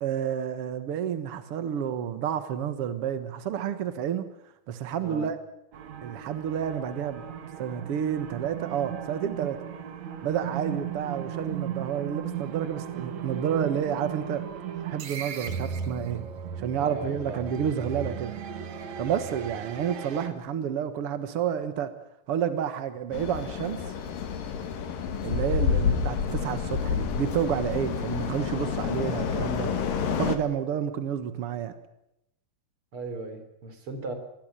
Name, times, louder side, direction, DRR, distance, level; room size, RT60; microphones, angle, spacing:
voice 1, 0.0-4.3 4.7-5.3 6.0-7.2 7.6-9.6 10.2-14.4 14.8-16.2 16.6-18.3 19.0-21.9 22.3-23.8 25.2-29.7 30.0-31.7, right 9 dB, 75° right, 11 dB, 1.3 m, -30 dB
sound 1, 5.7-20.3, right 8 dB, 50° right, 2.7 m, -36 dB
voice 2, 16.8-17.4 19.1-19.3 32.9-34.1, right 2 dB, 35° right, 8 dB, 3.9 m, -37 dB
sound 2, 23.1-30.4, left 6 dB, 60° left, 3.4 m, -29 dB
25.5 x 20.5 x 6.8 m, 0.82 s
omnidirectional pair, 4.7 m